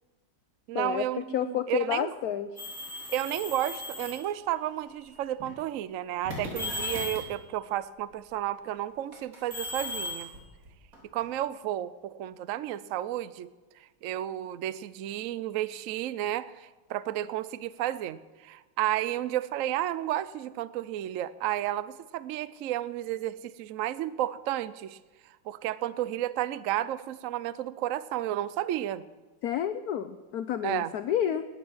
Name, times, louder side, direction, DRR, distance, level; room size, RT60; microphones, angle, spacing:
voice 1, 0.7-2.2 3.1-10.3 11.1-13.5 14.0-25.0 25.5-29.0 30.6-30.9, right 13 dB, 85° right, 16 dB, 0.7 m, -32 dB
voice 2, 1.3-2.5 29.4-31.5, left 10 dB, 70° left, 11 dB, 0.9 m, -30 dB
sound 1, 2.6-4.3 5.2-5.5 6.3-7.4 9.1-11.2, left 2 dB, 45° right, 3.6 m, -36 dB
19.5 x 9.6 x 6.2 m, 1.3 s
omnidirectional pair, 2.1 m